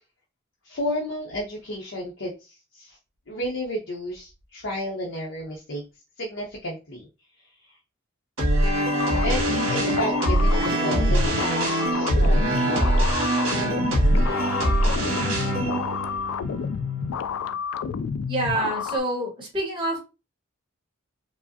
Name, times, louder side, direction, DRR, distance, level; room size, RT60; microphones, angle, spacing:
voice 1, 0.6-3.0 3.3-5.8 6.2-7.1 9.2-13.2, equal, 60° left, -2 dB, 0.8 m, -32 dB
sound 1, 8.4-17.5, right 1 dB, 70° right, 1.6 m, -23 dB
sound 2, 9.0-19.0, left 7 dB, 85° left, 0.3 m, -30 dB
voice 2, 18.3-20.0, right 1 dB, 25° right, -2 dB, 1.4 m, -27 dB
4.6 x 2.0 x 2.7 m, 0.28 s
head